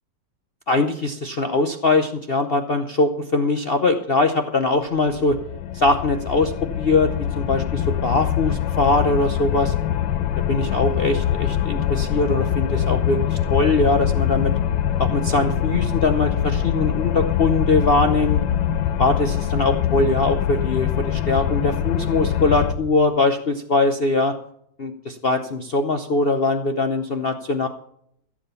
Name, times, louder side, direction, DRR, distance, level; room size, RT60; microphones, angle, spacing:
voice 1, 0.7-5.4 5.7-6.5 6.8-7.1 7.4-9.7 10.5-14.5 15.0-18.4 19.0-24.3 24.8-27.7, left 3 dB, 55° left, 6 dB, 0.6 m, -21 dB
sound 1, 5.0-22.7, left 10 dB, 75° left, 1.5 m, -23 dB
15.0 x 7.5 x 6.9 m, 0.70 s
omnidirectional pair, 2.0 m